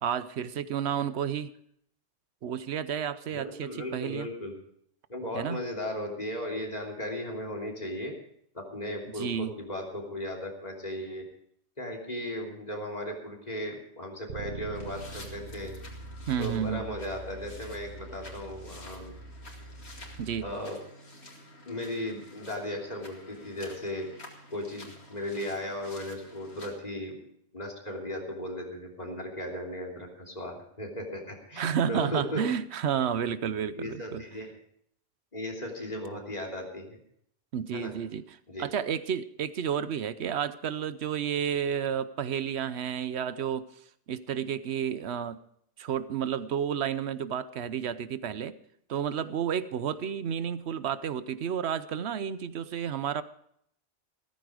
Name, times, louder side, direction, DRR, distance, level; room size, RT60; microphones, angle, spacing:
voice 1, 0.0-1.5 2.4-4.3 5.3-5.6 9.2-9.5 16.3-16.9 20.2-20.5 31.6-34.2 37.5-43.7 44.1-45.4 45.8-48.6 48.9-53.2, right 8 dB, 90° right, 14 dB, 1.0 m, -31 dB
voice 2, 3.3-4.5 5.1-8.1 8.5-11.3 11.8-15.7 16.4-19.1 20.4-20.8 21.7-24.1 24.5-27.2 27.5-32.4 33.7-34.5 35.3-37.0 37.7-37.9 38.5-38.7, left 1 dB, 40° left, 0 dB, 3.2 m, -36 dB
Bass guitar, 14.3-20.5, right 3 dB, 60° right, 1.0 m, -44 dB
sound 1, 14.7-26.7, left 1 dB, 85° left, 2.6 m, -50 dB
14.5 x 14.0 x 4.9 m, 0.68 s
omnidirectional pair, 1.1 m